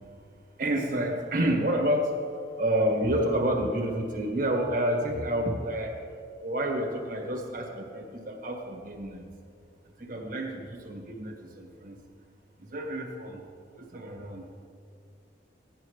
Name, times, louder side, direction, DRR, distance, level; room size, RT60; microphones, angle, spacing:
voice 1, 0.6-2.2 2.6-6.0 6.4-9.2 10.0-12.0 12.7-13.4 13.8-14.4, right 1 dB, 50° right, 1 dB, 1.7 m, -29 dB
16.0 x 10.5 x 3.3 m, 2.1 s
head